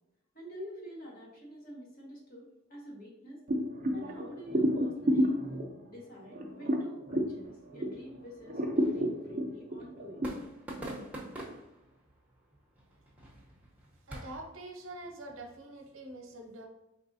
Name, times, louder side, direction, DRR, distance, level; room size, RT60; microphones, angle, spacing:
voice 1, 0.3-3.4 3.9-5.3 5.9-10.2, equal, 45° left, -3 dB, 1.3 m, -47 dB
sound 1, 3.5-8.1 8.4-10.3, equal, 40° right, 0.6 m, -30 dB
sound 2, 7.3-14.4, right 1 dB, 5° right, 0.8 m, -47 dB
voice 2, 14.1-16.7, right 1 dB, 80° right, 3 dB, 0.9 m, -45 dB
4.8 x 3.5 x 2.7 m, 0.90 s
head